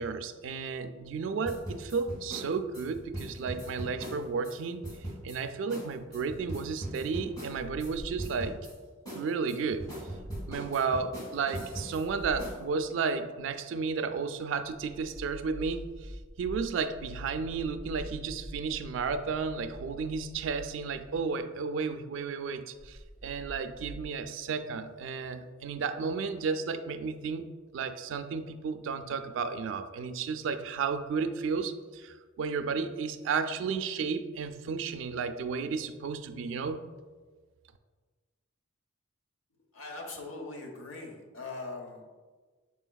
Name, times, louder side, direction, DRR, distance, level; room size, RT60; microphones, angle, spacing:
voice 1, 0.0-4.8 5.2-8.6 9.1-9.9 10.5-15.9 16.4-27.5 27.7-36.8, right 5 dB, 65° right, 10 dB, 0.3 m, -33 dB
sound 1, 1.4-4.6 4.8-5.4 5.7-5.9 6.1-7.9 8.2-8.7 9.0-12.0 12.4-12.6, right 1 dB, 20° left, 1.4 m, -40 dB
sound 2, 7.5-8.7 10.2-10.8 12.0-12.7 14.6-21.4 22.7-24.1, equal, 40° left, 1.0 m, -45 dB
voice 2, 39.7-42.2, left 3 dB, 80° left, 2 dB, 0.8 m, -41 dB
5.6 x 4.2 x 2.2 m, 1.4 s
head